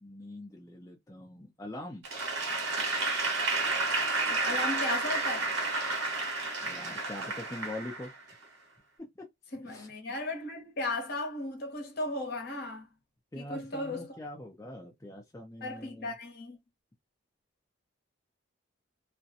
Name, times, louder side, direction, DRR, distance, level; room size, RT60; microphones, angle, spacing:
voice 1, 0.0-2.0 6.6-8.1 9.2-9.3 9.6-9.9 13.3-16.1, left 1 dB, 15° left, 0.4 m, -43 dB
Applause / Crowd, 2.0-8.4, right 3 dB, 90° right, 1.2 m, -31 dB
voice 2, 4.3-5.6 9.5-12.9 13.3-14.2 15.6-16.6, left 2 dB, 50° left, 0.9 m, -36 dB
2.4 x 2.1 x 2.6 m
head